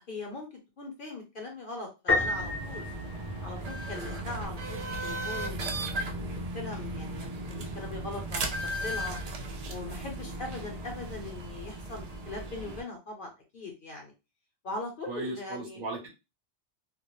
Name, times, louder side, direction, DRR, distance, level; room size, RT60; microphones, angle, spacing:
voice 1, 0.1-0.5 0.8-2.9 3.4-8.4 8.8-9.2 9.7-14.1 14.6-15.8, left 2 dB, 55° left, 2 dB, 0.7 m, -40 dB
Piano, 2.1-3.9, left 3 dB, 20° left, 0.3 m, -30 dB
sound 1, 2.2-12.8, right 1 dB, 85° right, 0.3 m, -36 dB
voice 2, 15.1-16.1, right 2 dB, 50° right, -1 dB, 0.9 m, -36 dB
2.2 x 2.1 x 2.9 m, 0.27 s
omnidirectional pair, 1.2 m